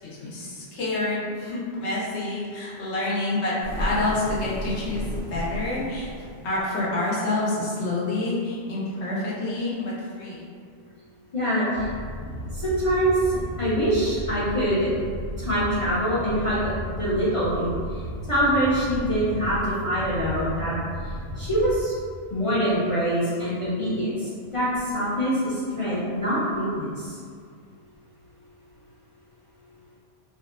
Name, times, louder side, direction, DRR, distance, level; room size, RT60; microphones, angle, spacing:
voice 1, 0.0-5.1 5.3-10.5, left 2 dB, 90° left, -6 dB, 1.0 m, -28 dB
sound 1, 3.6-6.6, equal, 45° right, 0.5 m, -33 dB
voice 2, 11.3-11.9 12.5-14.9 15.4-16.7 17.0-18.0 18.3-20.7 21.4-21.9 22.3-27.1, equal, 45° left, -11 dB, 0.4 m, -24 dB
sound 2, 11.7-21.8, equal, 85° right, 0.9 m, -34 dB
2.6 x 2.1 x 2.3 m, 2.1 s
omnidirectional pair, 1.1 m